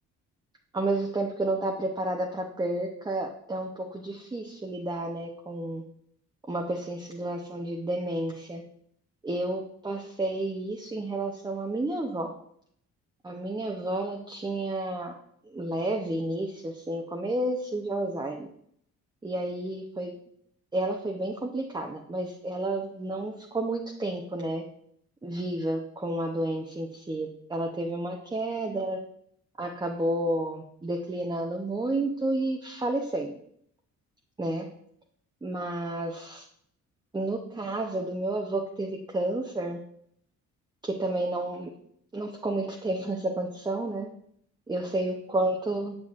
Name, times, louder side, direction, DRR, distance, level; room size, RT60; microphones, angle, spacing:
voice 1, 0.7-5.8 6.5-8.6 9.2-12.3 13.2-15.1 15.5-18.5 19.2-20.2 20.7-24.6 25.2-29.0 29.6-33.3 34.4-34.7 35.4-36.4 37.1-39.8 40.8-41.7 42.1-44.1 44.7-46.0, right 2 dB, 15° right, 1 dB, 0.7 m, -31 dB
7.3 x 6.2 x 2.4 m, 0.68 s
cardioid pair, 90°, 30 cm